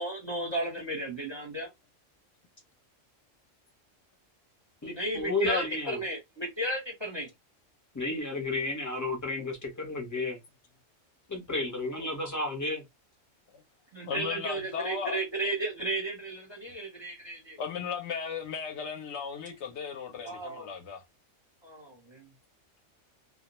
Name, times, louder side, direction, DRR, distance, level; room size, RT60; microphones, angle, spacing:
voice 1, 0.0-1.7 4.9-7.3 12.0-12.1 13.9-17.6 20.2-20.7 21.6-22.3, right 1 dB, 25° right, 0.7 m, -34 dB
voice 2, 4.8-6.0 7.9-10.4 11.3-12.8, left 2 dB, 20° left, 0.6 m, -32 dB
voice 3, 14.1-15.2 17.6-21.0, left 6 dB, 70° left, 0.8 m, -36 dB
2.2 x 2.2 x 2.8 m
omnidirectional pair, 1.3 m